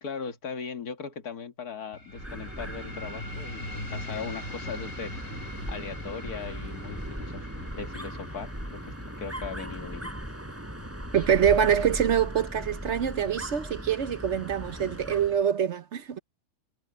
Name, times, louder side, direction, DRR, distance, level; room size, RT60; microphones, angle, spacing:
voice 1, 0.0-10.1, left 5 dB, 80° left, 2.3 m, -39 dB
sound 1, 1.9-13.0, left 1 dB, 55° left, 3.8 m, -43 dB
Dog, 2.1-15.4, equal, 10° right, 6.8 m, -38 dB
voice 2, 11.1-16.2, right 8 dB, 55° right, 1.0 m, -25 dB
omnidirectional pair, 1.6 m